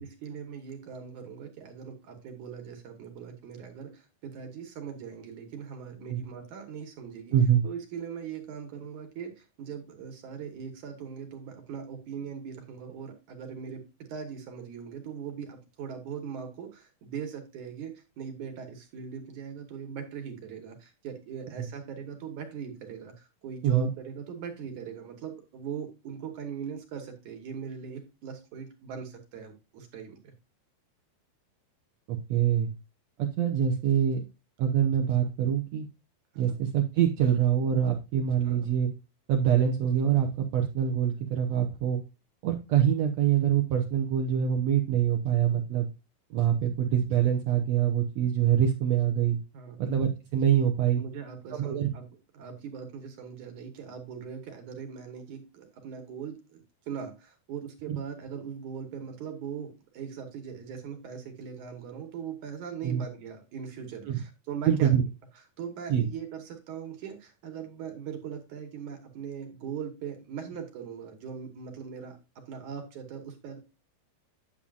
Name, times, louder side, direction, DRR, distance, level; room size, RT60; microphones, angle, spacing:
voice 1, 0.0-7.3 7.6-30.3 36.3-36.6 38.4-38.7 49.5-49.8 51.0-52.0 52.3-64.9 65.6-73.6, right 7 dB, 60° right, 4 dB, 2.5 m, -40 dB
voice 2, 7.3-7.6 23.6-23.9 32.1-32.7 33.2-34.2 34.6-35.9 36.4-38.9 39.3-42.0 42.4-45.9 46.3-49.4 49.8-51.0 51.5-51.9 57.9-58.0 62.8-63.0 64.1-64.2 64.7-65.0 65.9-66.1, right 9 dB, 80° right, 3 dB, 1.5 m, -25 dB
8.9 x 8.5 x 2.5 m, 0.28 s
omnidirectional pair, 4.3 m